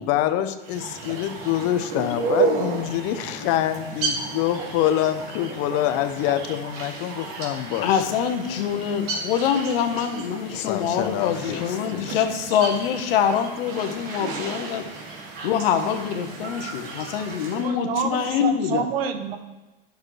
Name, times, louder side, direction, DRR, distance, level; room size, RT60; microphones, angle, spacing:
voice 1, 0.1-8.1 10.5-12.3 12.5-12.7, left 12 dB, 50° left, 11 dB, 0.7 m, -26 dB
sound 1, 0.6-17.7, right 4 dB, 45° right, 2.4 m, -32 dB
voice 2, 7.8-14.8 15.1-18.9, left 8 dB, 70° left, 6 dB, 1.2 m, -25 dB
voice 3, 17.6-19.4, right 6 dB, 75° right, 8 dB, 1.0 m, -28 dB
10.5 x 6.4 x 3.2 m, 1.1 s
hypercardioid pair, 100°, 30 cm